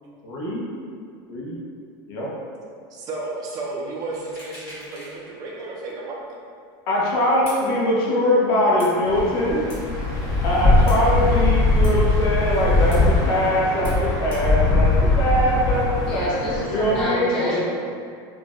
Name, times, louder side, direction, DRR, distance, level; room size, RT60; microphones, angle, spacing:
voice 1, 0.2-0.6 1.3-1.6 2.1-2.3 6.9-9.6 10.4-16.3 16.7-17.6, left 1 dB, 90° left, -4 dB, 0.7 m, -22 dB
voice 2, 2.9-6.2 17.4-17.6, right 3 dB, 30° right, -3 dB, 0.4 m, -33 dB
sound 1, 4.1-5.2 5.6-5.7 7.5-7.6 8.8-8.9 9.7-9.8 10.9-11.0 11.8-11.9 12.9-13.0 13.8-14.0 14.3-14.4, left 1 dB, 70° left, 1.3 m, -41 dB
sound 2, 9.1-17.0, left 2 dB, 25° left, 0.5 m, -21 dB
voice 3, 16.0-17.6, equal, 45° left, -7 dB, 0.9 m, -28 dB
2.5 x 2.0 x 3.6 m, 2.3 s
supercardioid pair, 160°, 12 cm